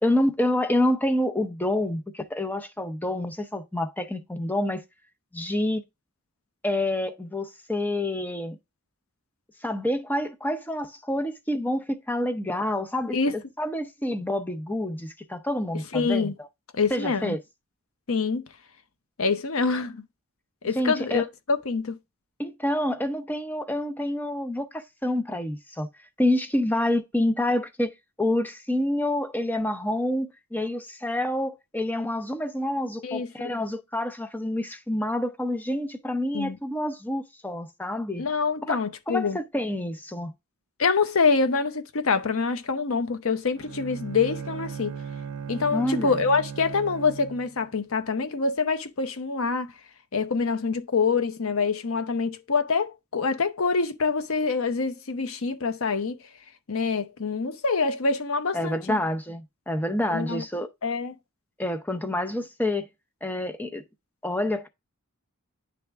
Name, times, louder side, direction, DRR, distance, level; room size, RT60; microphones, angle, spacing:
voice 1, 0.0-4.8 5.3-5.8 6.6-8.6 9.6-13.2 13.6-16.3 16.9-17.4 20.8-21.2 22.4-25.9 26.2-38.3 38.7-38.8 39.1-40.3 45.7-46.1 58.5-60.7 61.6-62.9 63.2-63.8 64.2-64.7, left 1 dB, 10° left, 0.5 m, -27 dB
voice 2, 15.9-16.3 16.7-17.4 18.1-18.4 19.2-20.0 20.6-22.0 33.0-33.5 36.3-36.6 38.2-39.4 40.8-45.0 45.5-49.7 50.1-56.2 56.7-59.0 60.1-60.4 60.8-61.1, left 4 dB, 70° left, 0.7 m, -25 dB
Bowed string instrument, 43.6-47.7, right 6 dB, 75° right, 0.5 m, -37 dB
9.8 x 3.4 x 3.4 m
head